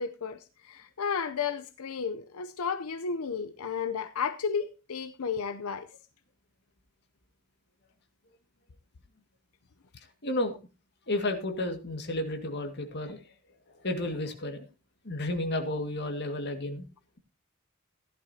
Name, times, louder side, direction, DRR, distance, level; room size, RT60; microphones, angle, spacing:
voice 1, 0.0-5.9, left 6 dB, 90° left, 0.7 m, -33 dB
voice 2, 10.2-10.5 11.1-13.2 13.8-14.7 15.1-16.8, left 1 dB, 50° left, 1.9 m, -32 dB
15.0 x 11.0 x 2.8 m
head